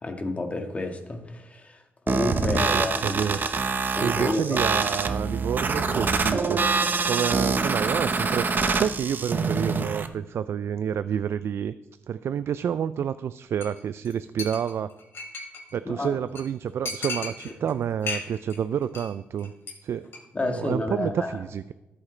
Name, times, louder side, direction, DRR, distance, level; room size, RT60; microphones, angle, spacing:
voice 1, 0.0-3.2 3.9-4.6 15.8-16.1 20.3-21.4, left 2 dB, 30° left, 4 dB, 1.6 m, -30 dB
sound 1, 2.1-10.1, right 4 dB, 45° right, 0.9 m, -25 dB
voice 2, 2.5-3.4 4.0-6.6 7.1-11.7 12.1-14.9 15.7-19.5 19.8-20.1 20.4-21.7, right 8 dB, 65° right, 14 dB, 0.3 m, -29 dB
Chink clink, 13.6-13.8 14.0-14.1 14.4-15.7 16.0-16.1 16.4-16.5 16.9-17.7 18.0-18.6 18.8-19.1 19.4-19.7 20.0-20.2, left 3 dB, 60° left, 3.5 m, -34 dB
13.5 x 8.4 x 3.2 m, 0.98 s
cardioid pair, 75°, 5 cm